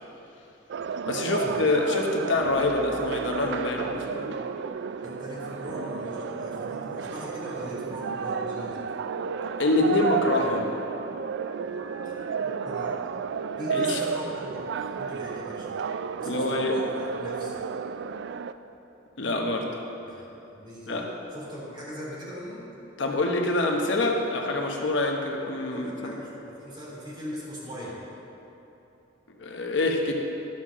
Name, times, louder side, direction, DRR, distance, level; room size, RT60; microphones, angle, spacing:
sound 1, 0.7-18.5, right 6 dB, 60° right, 0.3 m, -32 dB
voice 1, 1.1-4.3 9.6-10.7 13.7-14.0 16.2-16.8 19.2-19.7 20.9-21.1 23.0-26.1 29.4-30.1, left 2 dB, 70° left, 1 dB, 0.9 m, -26 dB
sound 2, 2.4-5.3 5.7-7.5 7.8-7.9 8.2-8.4 8.6-8.8 9.1-10.8 11.6-13.1 13.9-14.8, right 1 dB, 80° right, 1.0 m, -47 dB
voice 2, 5.0-8.8 12.0-12.1 12.4-13.2 13.6-15.8 16.2-17.6 20.0-20.2 20.5-21.0 21.3-22.6 25.7-28.0, equal, 25° right, -6 dB, 2.7 m, -39 dB
12.0 x 5.8 x 6.2 m, 2.9 s
head